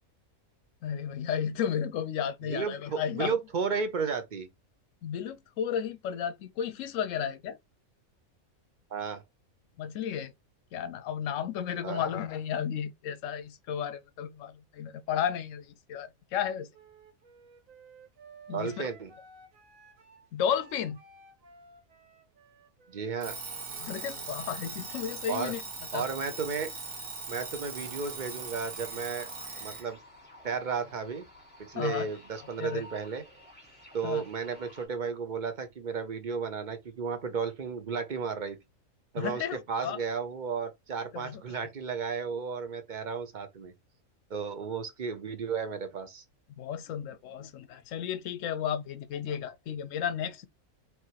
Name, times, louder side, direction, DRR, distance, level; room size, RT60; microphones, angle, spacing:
voice 1, 0.8-3.4 5.0-7.6 9.8-10.3 10.7-16.7 18.5-18.9 20.3-21.0 23.8-25.6 25.9-26.0 31.8-32.1 32.6-32.8 34.0-34.2 39.2-40.0 41.1-41.4 46.6-50.5, left 8 dB, 70° left, 0.9 m, -33 dB
voice 2, 2.4-4.5 8.9-9.2 11.8-12.1 18.5-19.1 22.9-23.4 25.3-25.5 25.9-26.7 27.3-29.3 29.6-30.0 30.4-31.2 31.6-33.2 33.9-38.6 39.1-43.7 44.3-46.2, right 5 dB, 40° right, 0.7 m, -33 dB
Wind instrument woodwind instrument, 16.7-24.2, right 3 dB, 70° right, 1.5 m, -56 dB
Alarm, 23.2-29.9, right 4 dB, 90° right, 1.8 m, -40 dB
sound 1, 27.7-34.9, left 1 dB, 5° left, 1.5 m, -53 dB
4.6 x 3.1 x 2.8 m
omnidirectional pair, 1.5 m